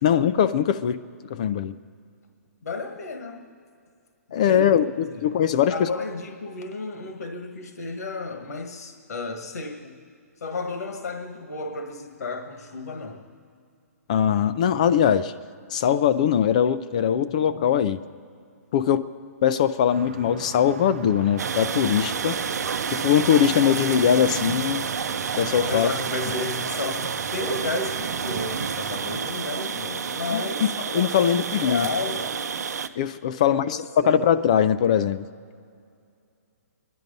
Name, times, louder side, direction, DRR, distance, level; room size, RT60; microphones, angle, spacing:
voice 1, 0.0-1.0 1.3-1.7 4.3-5.9 14.1-15.3 15.7-18.0 18.7-19.0 19.4-22.4 22.9-24.9 25.4-25.9 30.3-30.4 30.9-31.9 33.0-35.3, left 9 dB, 25° left, 13 dB, 0.3 m, -21 dB
voice 2, 2.6-3.5 4.3-5.3 5.7-9.9 10.4-13.3 22.4-22.6 25.7-30.7 31.4-32.4 33.4-34.2, left 3 dB, 70° left, 5 dB, 1.6 m, -33 dB
sound 1, 19.9-29.3, right 8 dB, 40° right, 0.6 m, -38 dB
sound 2, 21.4-32.9, right 6 dB, 80° right, 0.7 m, -29 dB
25.5 x 11.0 x 5.3 m, 2.3 s
hypercardioid pair, 170°, 9 cm